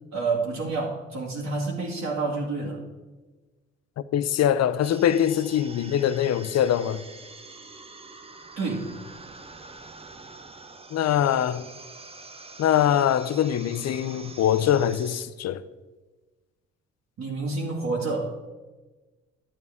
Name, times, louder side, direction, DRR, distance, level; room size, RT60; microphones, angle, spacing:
voice 1, 0.1-2.8 8.6-8.9 17.2-18.3, right 3 dB, 60° right, 2.3 m, -28 dB
voice 2, 4.1-7.0 10.9-11.7 12.6-15.6, left 10 dB, 60° left, 0.5 m, -23 dB
sound 1, 4.8-15.2, right 3 dB, 20° right, 0.7 m, -45 dB
11.0 x 8.3 x 3.6 m
cardioid pair, 90°, 30 cm